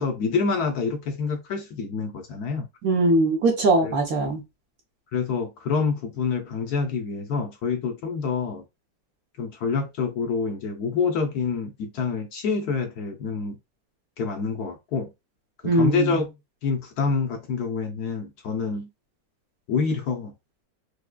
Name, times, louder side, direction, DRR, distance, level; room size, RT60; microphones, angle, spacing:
voice 1, 0.0-2.7 3.8-3.9 5.1-8.6 9.4-13.6 14.2-15.1 15.6-16.3 16.6-18.9 19.7-20.3, left 5 dB, 70° left, 1.0 m, -27 dB
voice 2, 2.8-4.4 15.6-16.2, right 2 dB, 60° right, 1.2 m, -21 dB
4.8 x 2.2 x 2.2 m
omnidirectional pair, 1.9 m